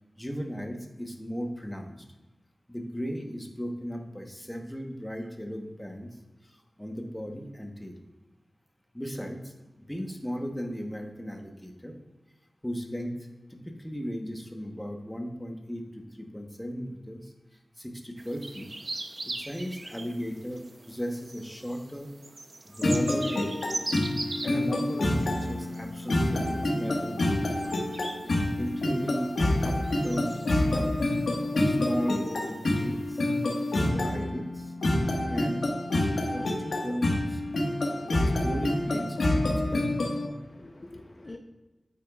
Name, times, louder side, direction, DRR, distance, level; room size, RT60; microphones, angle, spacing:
voice 1, 0.2-2.0 2.7-6.1 6.5-8.0 8.9-9.5 9.9-12.0 12.6-13.1 13.5-17.3 17.8-18.7 19.2-22.1 22.6-23.5 24.4-27.9 28.2-29.8 30.0-31.0 31.6-33.3 33.8-34.7 35.3-35.6 36.3-37.4 38.0-39.9, equal, 5° left, 2 dB, 1.1 m, -36 dB
sound 1, 18.2-33.9, right 2 dB, 45° right, 0.7 m, -42 dB
sound 2, 22.8-40.3, left 1 dB, 85° left, 1.5 m, -27 dB
voice 2, 37.6-38.3 40.3-41.4, left 2 dB, 40° left, 3 dB, 0.7 m, -47 dB
9.0 x 8.5 x 2.4 m, 1.1 s
wide cardioid pair, 100°, 0 cm